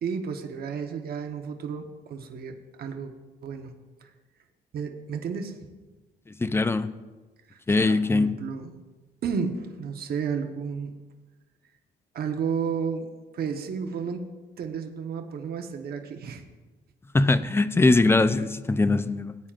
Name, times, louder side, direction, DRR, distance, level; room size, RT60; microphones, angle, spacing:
voice 1, 0.0-3.1 3.4-3.7 4.0-4.1 4.7-5.6 7.7-8.7 9.2-10.9 12.1-13.1 13.3-14.2 14.6-16.4, right 6 dB, 55° right, 4 dB, 1.1 m, -32 dB
voice 2, 6.4-6.9 7.7-8.3 17.1-19.3, left 3 dB, 15° left, 13 dB, 0.4 m, -21 dB
19.0 x 8.9 x 2.5 m, 1.2 s
cardioid pair, 120°, 18 cm